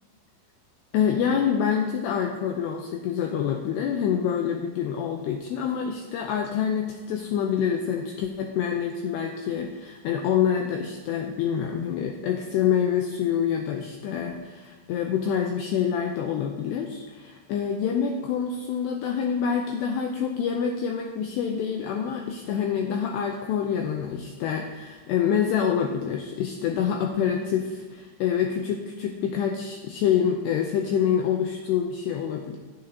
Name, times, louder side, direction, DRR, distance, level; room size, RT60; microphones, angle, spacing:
voice 1, 0.9-32.6, left 8 dB, 85° left, 3 dB, 2.4 m, -26 dB
16.0 x 9.9 x 2.8 m, 1.4 s
omnidirectional pair, 5.6 m